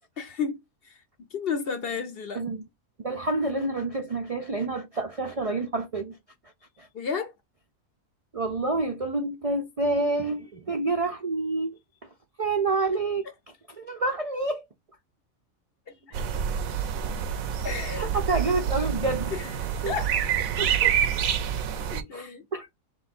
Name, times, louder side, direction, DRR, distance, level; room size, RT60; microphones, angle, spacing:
voice 1, 0.2-0.6 0.8-1.0 1.3-2.4 6.9-7.3 15.9-16.2 17.6-18.0 19.3-20.1 21.9-22.4, left 6 dB, 55° left, 0.7 m, -32 dB
voice 2, 3.0-6.2 6.8-6.9 8.3-11.8 12.4-13.3 13.8-14.6 18.0-19.3 19.8-19.9 20.6-21.0 21.9-22.7, right 3 dB, 60° right, 0.3 m, -28 dB
sound 1, 16.1-22.0, right 8 dB, 85° right, 1.1 m, -27 dB
3.4 x 3.1 x 4.1 m
omnidirectional pair, 1.4 m